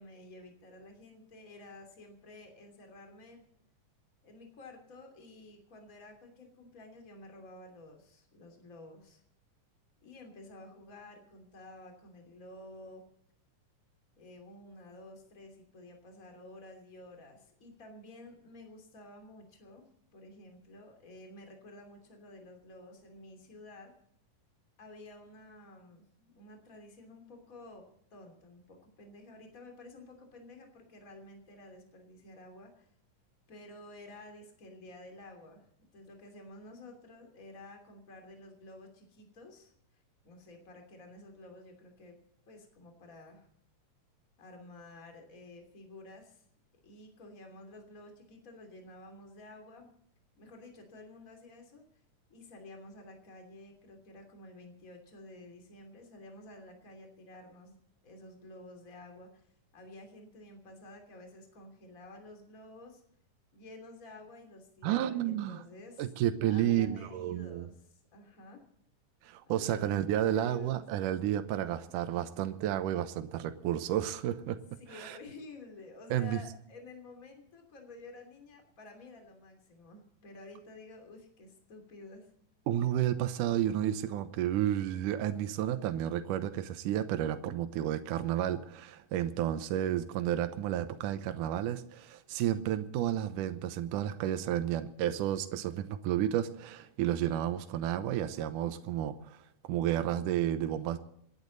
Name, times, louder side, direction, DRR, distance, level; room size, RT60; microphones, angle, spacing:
voice 1, 0.0-3.4 4.2-9.2 10.0-13.0 14.2-19.9 20.1-23.9 24.8-32.9 33.5-35.7 35.9-42.2 42.5-43.5 44.4-46.4 46.8-49.9 50.4-51.8 52.3-57.8 58.0-63.0 63.5-66.1 66.5-68.6 69.4-70.8 74.8-82.3, left 2 dB, 25° left, 3 dB, 3.1 m, -51 dB
voice 2, 64.8-65.6 66.0-67.7 69.2-74.6 74.9-75.2 76.1-76.4 82.7-99.4 99.7-101.0, right 11 dB, 75° right, 9 dB, 2.4 m, -31 dB
27.0 x 10.5 x 4.0 m, 0.72 s
omnidirectional pair, 3.9 m